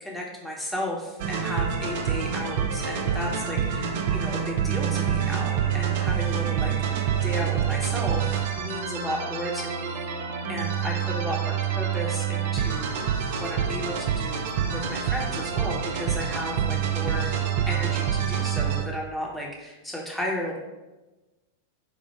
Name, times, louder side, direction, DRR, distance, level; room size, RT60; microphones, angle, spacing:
voice 1, 0.0-13.1 13.3-20.6, left 1 dB, ahead, -3 dB, 0.8 m, -34 dB
sound 1, 1.2-18.8, right 8 dB, 50° right, 0.3 m, -27 dB
4.6 x 2.0 x 3.2 m, 1.1 s
figure-of-eight pair, 90°, 0 cm